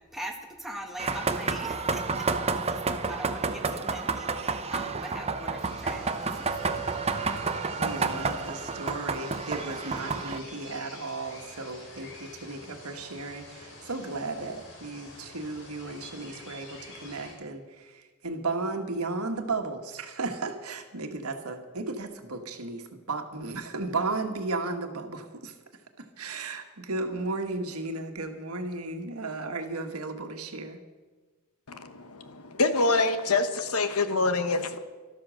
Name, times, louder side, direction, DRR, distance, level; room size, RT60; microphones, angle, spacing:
voice 1, 0.1-6.8, right 1 dB, ahead, 1 dB, 1.7 m, -42 dB
sound 1, 1.0-10.4, right 4 dB, 30° right, 0.7 m, -30 dB
sound 2, 5.6-17.3, left 2 dB, 60° left, 4.0 m, -47 dB
voice 2, 7.8-25.5 26.0-30.8, right 3 dB, 80° right, 5 dB, 1.6 m, -34 dB
voice 3, 31.7-34.8, left 3 dB, 80° left, 10 dB, 1.1 m, -26 dB
13.0 x 12.5 x 6.4 m, 1.3 s
head